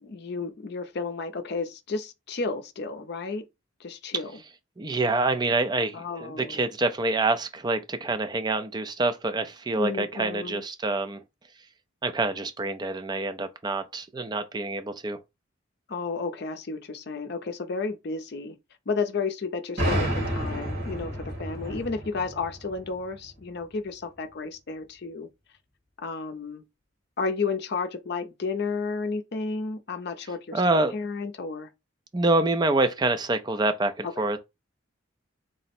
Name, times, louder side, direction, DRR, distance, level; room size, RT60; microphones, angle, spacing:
voice 1, 0.0-3.4 3.8-4.3 5.9-6.6 9.8-10.6 15.9-18.6 18.9-25.3 26.0-26.6 27.2-30.6 30.9-31.7 34.0-34.3, left 4 dB, 55° left, 0.5 m, -32 dB
voice 2, 4.8-11.2 12.0-15.2 30.5-30.9 32.1-34.4, right 2 dB, 20° right, 0.4 m, -26 dB
sound 1, 19.8-23.4, equal, 55° right, 2.3 m, -30 dB
3.8 x 2.0 x 4.2 m
head